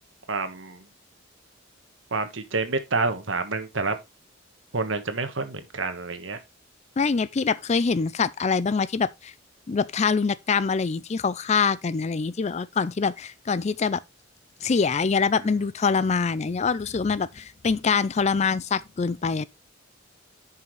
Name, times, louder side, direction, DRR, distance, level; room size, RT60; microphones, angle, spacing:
voice 1, 0.3-0.8 2.1-4.0 4.7-6.4, right 3 dB, 75° right, 1.4 m, -28 dB
voice 2, 7.0-9.3 9.7-14.0 14.6-19.5, left 5 dB, 35° left, 0.4 m, -24 dB
10.5 x 5.6 x 3.2 m
head